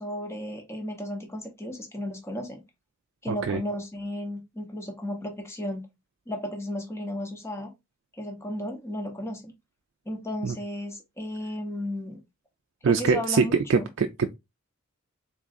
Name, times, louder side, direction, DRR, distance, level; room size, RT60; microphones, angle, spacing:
voice 1, 0.0-2.6 3.2-5.8 6.3-7.7 8.2-9.5 10.1-12.2 12.8-13.9, left 1 dB, 15° left, 0.8 m, -34 dB
voice 2, 3.3-3.6 10.4-10.6 12.8-14.3, right 5 dB, 60° right, 0.4 m, -24 dB
3.8 x 3.6 x 2.4 m
head